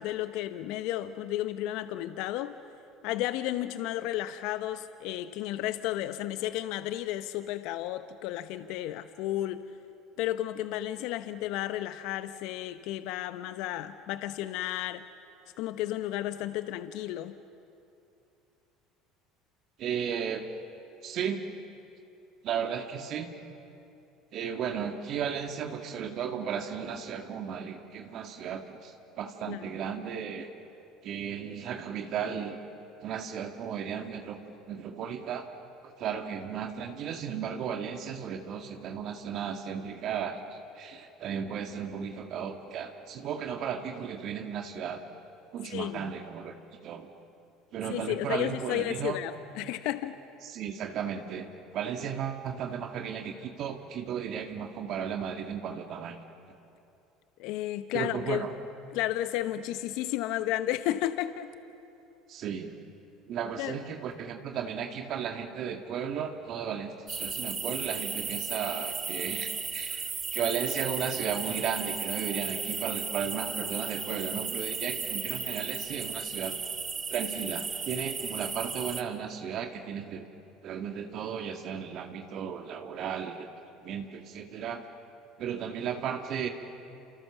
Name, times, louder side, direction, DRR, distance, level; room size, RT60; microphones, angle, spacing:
voice 1, 0.0-2.5 3.0-9.6 10.2-15.0 15.6-17.3 29.5-29.6 45.7-46.1 47.9-50.1 57.4-58.5 58.9-61.5 63.6-63.8, left 14 dB, 65° left, 11 dB, 0.8 m, -33 dB
voice 2, 19.8-20.5 21.0-21.4 22.4-23.3 24.3-30.5 31.0-32.6 33.0-34.4 34.7-35.5 35.8-45.0 45.5-46.5 46.8-47.1 47.7-49.2 50.4-51.5 51.7-56.2 57.9-58.5 62.3-62.7 63.3-76.6 77.1-80.3 80.6-83.5 83.8-84.8 85.4-86.5, right 7 dB, 55° right, 5 dB, 1.9 m, -35 dB
sound 1, 67.1-79.0, right 5 dB, 30° right, 2.0 m, -35 dB
28.5 x 28.5 x 7.1 m, 2.7 s
hypercardioid pair, 75°, 0 cm